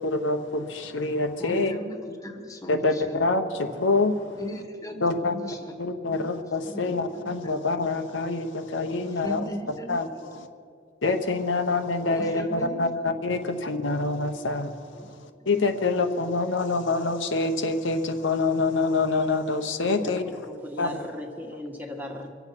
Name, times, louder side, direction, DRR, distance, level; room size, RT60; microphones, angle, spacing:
voice 1, 0.0-1.7 2.7-4.2 5.0-5.3 5.8-10.4 11.0-14.7 15.5-20.2 20.8-20.9, left 3 dB, 80° left, 6 dB, 0.9 m, -26 dB
voice 2, 1.4-2.0 2.2-3.2 4.4-5.7 6.1-6.3 6.6-7.5 9.2-9.9 10.3-10.4 12.1-13.1 15.0-15.1, equal, 20° left, 4 dB, 1.4 m, -38 dB
voice 3, 20.0-20.4 20.6-22.3, left 1 dB, 10° right, 1 dB, 1.4 m, -37 dB
24.0 x 8.1 x 5.8 m, 2.3 s
head